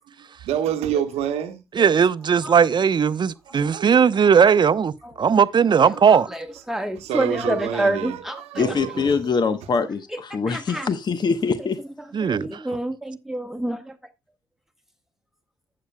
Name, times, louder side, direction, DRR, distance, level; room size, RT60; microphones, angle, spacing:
voice 1, 0.4-1.6 3.5-4.3 5.7-5.9 7.0-9.4, right 9 dB, 75° right, 1.1 m, -28 dB
voice 2, 1.8-6.3 12.1-12.6, right 7 dB, 45° right, 0.7 m, -18 dB
voice 3, 6.1-8.8 10.1-10.9 12.0-14.0, right 1 dB, 5° right, 1.1 m, -28 dB
voice 4, 8.6-11.8, left 5 dB, 45° left, 0.9 m, -23 dB
12.5 x 8.6 x 2.2 m
hypercardioid pair, 50°, 11 cm